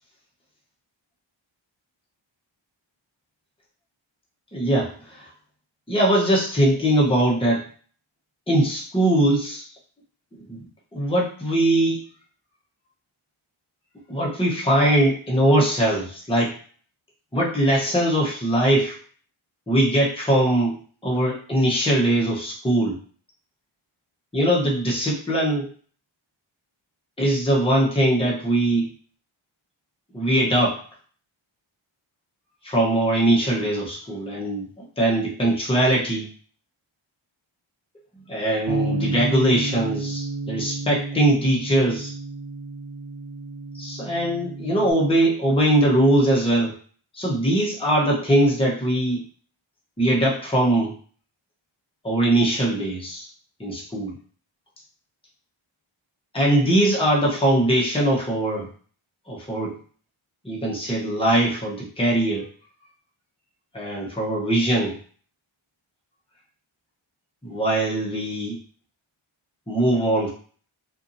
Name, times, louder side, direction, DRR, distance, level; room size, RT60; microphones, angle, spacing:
voice 1, 4.5-5.2 5.9-7.6 8.5-9.6 10.5-10.6 10.9-12.0 14.1-16.5 17.3-19.0 19.7-23.0 24.3-25.7 27.2-28.9 30.1-30.8 32.6-36.3 38.3-42.1 43.7-46.7 47.1-49.2 50.0-50.9 52.0-53.3 53.6-54.2 56.3-58.7 59.3-59.8 60.4-62.5 63.7-65.0 67.4-68.6 69.7-70.3, right 1 dB, 10° left, -4 dB, 0.9 m, -21 dB
Bass guitar, 38.7-44.9, right 2 dB, 85° right, 0.7 m, -31 dB
2.6 x 2.6 x 2.6 m, 0.43 s
wide cardioid pair, 40°, 50 cm